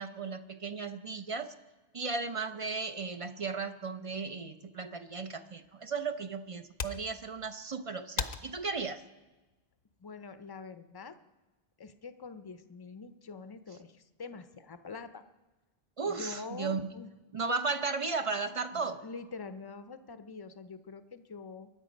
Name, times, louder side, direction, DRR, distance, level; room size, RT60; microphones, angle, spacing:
voice 1, 0.0-1.5 1.9-9.0 16.0-16.9 17.3-19.0, right 4 dB, 40° right, 9 dB, 0.6 m, -35 dB
sound 1, 5.6-10.7, left 6 dB, 55° left, 0.8 m, -43 dB
voice 2, 10.0-11.2 11.8-15.2 16.0-17.1 19.0-21.7, left 4 dB, 30° left, 10 dB, 0.6 m, -45 dB
23.5 x 10.0 x 5.2 m, 1.2 s
omnidirectional pair, 1.0 m